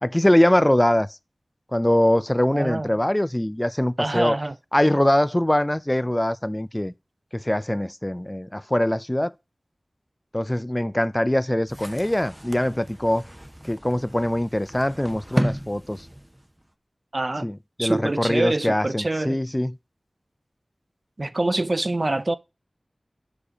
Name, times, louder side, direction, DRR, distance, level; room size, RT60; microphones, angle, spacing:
voice 1, 0.0-1.1 1.7-4.4 4.7-6.9 7.3-9.3 10.3-13.2 13.7-16.0 17.4-19.7, left 1 dB, 20° left, 0.3 m, -22 dB
voice 2, 2.5-2.9 4.0-4.6 17.1-17.5 17.8-19.4 21.2-22.4, right 2 dB, 45° right, 0.5 m, -25 dB
sound 1, 11.7-16.7, equal, 15° right, 0.7 m, -33 dB
6.6 x 4.9 x 5.0 m
wide cardioid pair, 50°, 0 cm